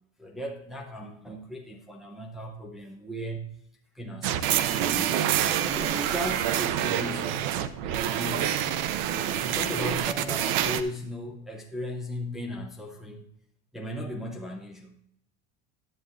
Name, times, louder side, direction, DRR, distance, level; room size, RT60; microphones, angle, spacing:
voice 1, 0.2-3.5 3.9-5.2 5.7-7.4 7.8-8.6 9.2-13.3 13.7-15.0, equal, ahead, -1 dB, 0.5 m, -37 dB
sound 1, 4.2-10.8, right 10 dB, 55° right, 0.6 m, -27 dB
11.0 x 8.3 x 2.5 m, 0.72 s
cardioid pair, 180°, 30 cm